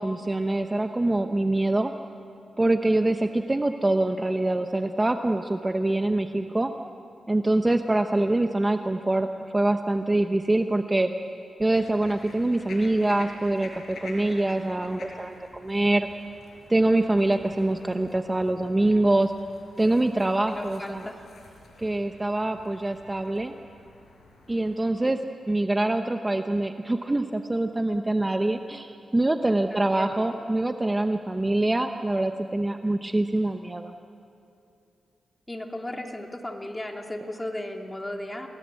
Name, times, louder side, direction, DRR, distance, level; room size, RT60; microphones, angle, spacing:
voice 1, 0.0-1.9 2.6-6.7 7.3-9.3 9.5-11.1 11.6-16.1 16.7-19.3 19.8-21.1 21.8-23.5 24.5-25.2 25.5-33.9, right 2 dB, 20° right, 6 dB, 0.9 m, -24 dB
sound 1, 11.7-24.8, left 3 dB, 70° left, 5.3 m, -48 dB
voice 2, 20.5-21.2 29.7-30.3 35.5-38.5, left 1 dB, 15° left, 2 dB, 2.4 m, -35 dB
29.5 x 20.5 x 8.5 m, 2.6 s
cardioid pair, 100°, 0 cm